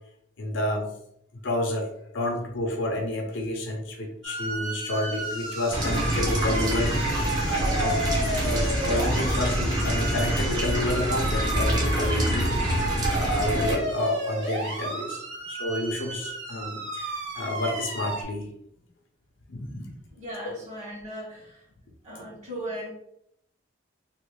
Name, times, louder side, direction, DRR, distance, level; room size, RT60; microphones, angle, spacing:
voice 1, 0.4-0.9 1.4-1.9 2.1-8.0 8.4-15.2 15.5-18.5 19.5-19.9, left 1 dB, 75° left, 2 dB, 0.6 m, -30 dB
sound 1, 4.2-18.2, right 2 dB, 65° right, 0.8 m, -33 dB
sound 2, 4.7-11.5, left 2 dB, 20° left, 0.5 m, -44 dB
sound 3, 5.7-13.8, right 1 dB, 20° right, 0.6 m, -26 dB
voice 2, 20.2-21.7 22.0-22.9, right 1 dB, 35° right, -4 dB, 1.4 m, -37 dB
3.2 x 2.3 x 3.1 m, 0.74 s
head